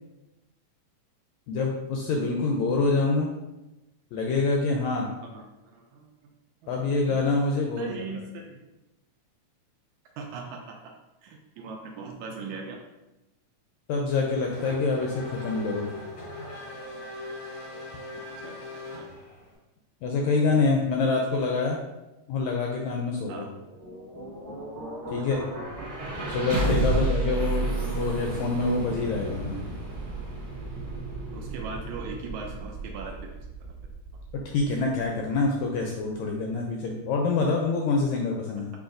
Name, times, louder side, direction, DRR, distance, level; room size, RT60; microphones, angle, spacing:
voice 1, 1.5-3.3 4.1-5.1 6.7-7.9 13.9-15.9 20.0-21.8 22.3-23.4 25.1-25.4 26.3-29.6 34.5-38.7, left 3 dB, 80° left, 0 dB, 1.6 m, -26 dB
voice 2, 5.2-6.3 6.6-7.2 7.8-8.6 10.2-10.8 11.2-12.8 18.1-19.1 23.3-23.5 26.9-27.1 31.3-33.8, right 4 dB, 80° right, 1 dB, 1.7 m, -40 dB
Race car auto racing / Accelerating revving vroom, 14.1-19.6, left 2 dB, 65° left, 1.2 m, -40 dB
sound 1, 23.6-35.6, right 2 dB, 40° right, 1.4 m, -32 dB
6.3 x 2.9 x 2.5 m, 0.99 s
omnidirectional pair, 3.6 m